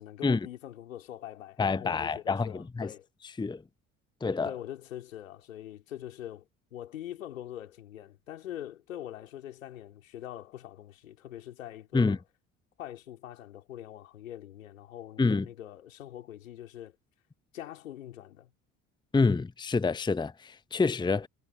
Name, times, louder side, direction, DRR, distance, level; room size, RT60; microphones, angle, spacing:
voice 1, 0.0-3.1 4.4-12.2 12.8-17.0 17.5-18.5, left 12 dB, 80° left, 4.0 m, -43 dB
voice 2, 1.6-2.9 3.4-3.6 4.2-4.5 11.9-12.2 15.2-15.5 19.1-21.3, left 4 dB, 10° left, 0.8 m, -27 dB
hypercardioid pair, 55°, 39 cm